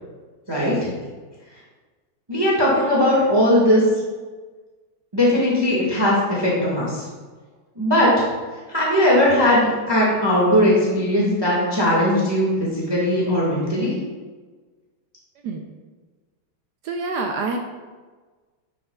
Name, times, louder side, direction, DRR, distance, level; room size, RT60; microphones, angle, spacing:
voice 1, 0.5-0.9 2.3-3.8 5.1-7.0 7.7-8.1 8.7-13.9, left 1 dB, 15° right, -5 dB, 1.3 m, -19 dB
voice 2, 16.8-17.6, right 3 dB, 80° right, 3 dB, 0.9 m, -26 dB
10.0 x 5.5 x 2.3 m, 1.4 s
omnidirectional pair, 2.3 m